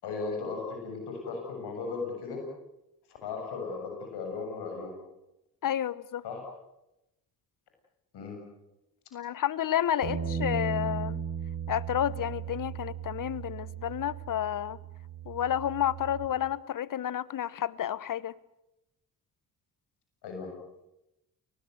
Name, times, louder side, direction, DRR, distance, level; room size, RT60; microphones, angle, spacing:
voice 1, 0.0-2.4 3.2-4.9 6.2-6.4 8.1-8.4 20.2-20.5, left 4 dB, 75° left, 7.3 m, -36 dB
voice 2, 5.6-6.2 9.1-11.2 11.7-14.8 15.2-18.3, left 10 dB, 50° left, 1.1 m, -30 dB
Bass guitar, 10.0-16.3, right 7 dB, 80° right, 6.9 m, -36 dB
29.0 x 19.0 x 8.0 m
hypercardioid pair, 50°, 41 cm